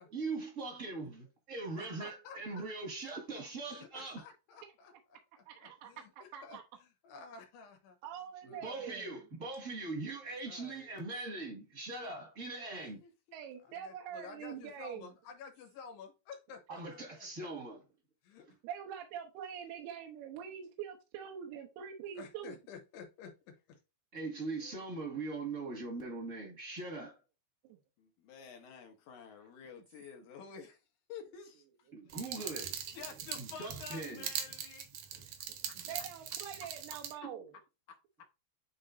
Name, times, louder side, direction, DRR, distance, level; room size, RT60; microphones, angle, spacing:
voice 1, 0.0-4.2 8.6-13.0 16.7-17.8 24.1-27.2 31.9-32.7 33.4-34.3 35.8-35.9 37.2-37.3, right 3 dB, 35° right, 1.2 m, -41 dB
voice 2, 1.8-2.6 3.7-8.0 8.5-8.9 10.4-10.9 13.6-17.3 18.2-18.5 22.2-23.8, left 5 dB, 85° left, 3.4 m, -52 dB
voice 3, 5.5-6.6 8.0-9.1 13.3-15.1 18.6-22.6 24.7-24.8 27.7-27.8 32.0-32.1 35.5-37.5, right 8 dB, 85° right, 2.9 m, -45 dB
voice 4, 13.0-13.4 13.7-13.8 28.0-30.8 31.1-31.6 32.8-34.9 35.6-35.8, left 6 dB, 70° left, 2.0 m, -50 dB
sound 1, 32.1-37.1, right 9 dB, 70° right, 2.5 m, -42 dB
9.9 x 4.3 x 2.6 m
omnidirectional pair, 4.7 m